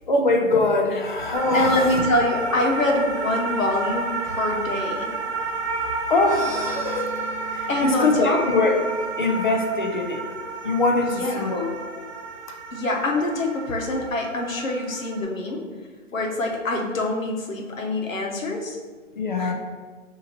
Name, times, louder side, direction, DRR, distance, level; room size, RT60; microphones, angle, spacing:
voice 1, 0.1-1.9 6.1-7.1 7.6-8.8 9.2-10.2 10.6-12.0 19.2-19.5, left 2 dB, 40° left, 2 dB, 0.5 m, -22 dB
sound 1, 1.3-15.2, right 4 dB, 60° right, 0.7 m, -31 dB
voice 2, 1.5-5.1 7.7-8.5 11.0-11.6 12.7-15.7 16.1-18.8 19.4-19.5, left 2 dB, 90° left, 1 dB, 1.0 m, -25 dB
sound 2, 6.1-10.4, right 3 dB, 15° left, 1.3 m, -42 dB
6.1 x 2.8 x 2.8 m, 1.5 s
hypercardioid pair, 165°, 39 cm